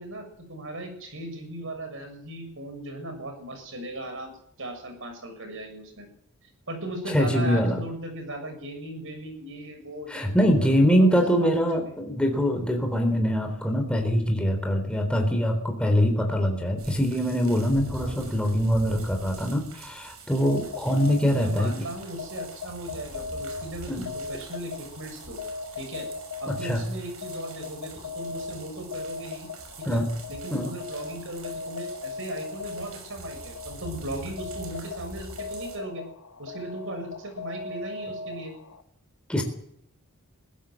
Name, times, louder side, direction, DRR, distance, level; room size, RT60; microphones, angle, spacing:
voice 1, 0.0-4.3 4.6-6.1 6.7-11.9 21.4-25.4 25.8-26.1 26.4-29.5 29.8-30.0 30.3-36.0 36.4-38.5, right 1 dB, 60° right, 6 dB, 6.9 m, -37 dB
voice 2, 7.1-7.8 10.1-21.7 23.9-24.0 26.5-26.8 29.9-30.1 30.5-30.7 39.3-39.4, equal, 5° left, 3 dB, 3.8 m, -23 dB
sound 1, 16.8-35.8, right 3 dB, 80° right, 6.3 m, -44 dB
sound 2, 20.3-38.8, left 4 dB, 85° left, 1.9 m, -39 dB
22.5 x 16.5 x 7.7 m, 0.71 s
head